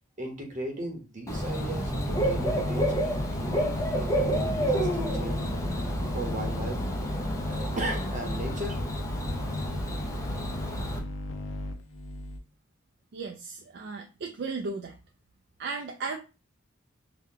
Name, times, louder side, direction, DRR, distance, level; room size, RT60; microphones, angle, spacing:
voice 1, 0.2-5.4 6.1-6.9 7.5-8.8, right 1 dB, 40° right, 3 dB, 0.8 m, -37 dB
Bird / Cricket, 1.3-11.0, equal, 15° left, 0.5 m, -30 dB
sound 1, 2.0-12.4, left 1 dB, 70° left, 0.5 m, -36 dB
voice 2, 13.1-15.0 15.6-16.2, right 4 dB, 60° right, 2 dB, 0.3 m, -35 dB
2.8 x 2.1 x 3.6 m, 0.31 s
head